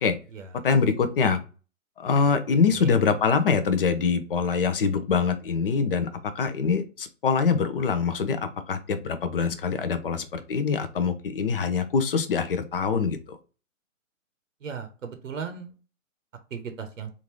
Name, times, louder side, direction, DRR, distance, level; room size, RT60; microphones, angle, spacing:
voice 1, 0.6-1.4 2.0-6.1 6.3-13.4, left 5 dB, 45° left, 9 dB, 0.5 m, -24 dB
voice 2, 14.6-15.7 16.5-17.1, right 6 dB, 70° right, 7 dB, 0.8 m, -36 dB
3.5 x 2.5 x 3.0 m, 0.35 s
figure-of-eight pair, 135°, 41 cm